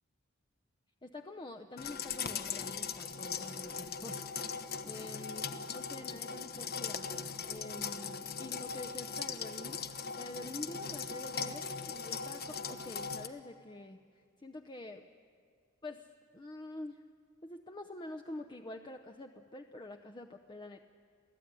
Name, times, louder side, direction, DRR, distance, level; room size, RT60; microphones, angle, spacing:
voice 1, 1.0-7.1 7.5-9.8 10.2-14.0 14.4-15.0 15.8-16.1 16.3-17.0 17.4-20.8, left 2 dB, 20° left, 4 dB, 0.7 m, -47 dB
sound 1, 1.8-13.3, left 6 dB, 50° left, 1.1 m, -39 dB
27.5 x 17.0 x 9.7 m, 2.2 s
head